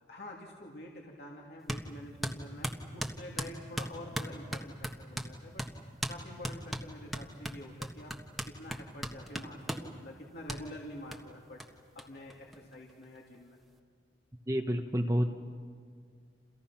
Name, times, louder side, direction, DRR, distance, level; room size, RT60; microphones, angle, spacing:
voice 1, 0.1-5.6 6.1-8.1 8.5-13.6, left 1 dB, 60° left, -1 dB, 2.8 m, -47 dB
sound 1, 1.7-1.9 2.2-5.3 5.6-5.7 6.0-6.2 6.4-9.9 10.5-10.6 11.1-11.2 11.6-11.7 12.0-12.1 12.3-13.0, equal, ahead, 1.5 m, -37 dB
voice 2, 14.5-15.3, equal, 15° right, 3 dB, 1.1 m, -29 dB
29.5 x 29.0 x 5.9 m, 2.1 s
head